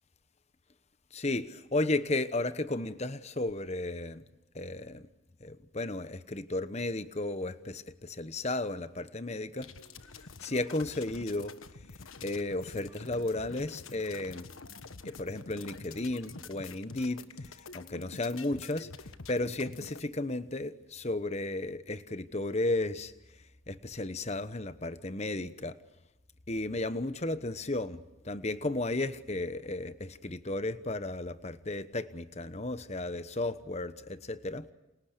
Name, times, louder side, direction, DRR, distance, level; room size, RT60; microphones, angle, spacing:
voice 1, 1.1-4.2 4.5-5.1 5.4-9.7 10.4-11.5 12.2-14.5 15.0-17.2 17.7-18.9 19.3-23.1 23.7-25.8 26.5-34.7, left 2 dB, 30° left, 1.1 m, -34 dB
sound 1, 9.6-20.0, left 4 dB, 85° left, 1.4 m, -47 dB
29.5 x 27.5 x 6.7 m
head